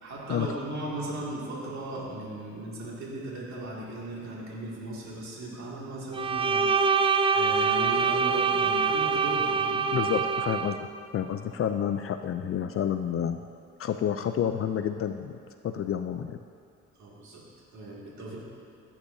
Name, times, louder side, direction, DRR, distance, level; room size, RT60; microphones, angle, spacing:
voice 1, 0.0-9.9 17.0-17.4 17.7-18.4, right 2 dB, 65° right, -5 dB, 2.4 m, -37 dB
Bowed string instrument, 6.1-10.8, right 5 dB, 20° right, 0.3 m, -25 dB
voice 2, 9.9-10.9 11.1-13.4 13.8-15.4 15.6-16.4, left 9 dB, 45° left, 7 dB, 0.4 m, -29 dB
16.0 x 8.7 x 2.7 m, 2.6 s
cardioid pair, 90°, 30 cm